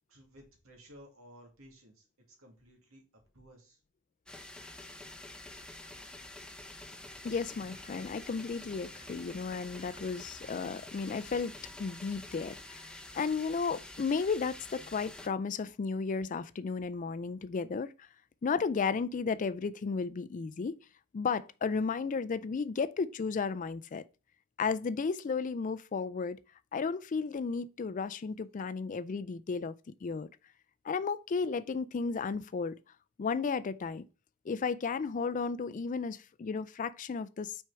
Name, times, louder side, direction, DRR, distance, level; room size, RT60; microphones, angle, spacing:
voice 1, 0.1-3.8, equal, 80° right, 2.3 m, -56 dB
sound 1, 4.3-15.3, left 2 dB, 5° left, 0.7 m, -48 dB
sound 2, 7.0-12.7, equal, 30° right, 1.1 m, -60 dB
voice 2, 7.2-11.5 11.8-12.8 13.1-18.1 18.4-20.8 21.1-24.0 24.6-26.4 26.7-29.7 30.0-30.3 30.8-32.8 33.2-34.1 34.5-37.6, left 5 dB, 40° left, 0.4 m, -33 dB
6.0 x 4.5 x 4.7 m
head